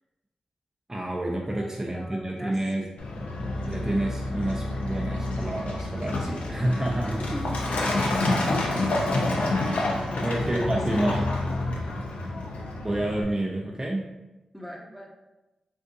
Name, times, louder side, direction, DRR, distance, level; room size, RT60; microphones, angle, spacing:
voice 1, 0.9-2.9 3.6-7.2 10.2-11.3 12.8-14.1, right 1 dB, 25° right, -2 dB, 0.5 m, -29 dB
voice 2, 1.5-2.6 7.1-7.5 7.9-8.2 9.8-11.2 14.5-15.1, equal, 10° left, -1 dB, 0.8 m, -37 dB
Truck, 3.0-13.2, left 2 dB, 75° left, 0.5 m, -28 dB
3.6 x 2.5 x 2.6 m, 1.0 s
cardioid pair, 45°, 2 cm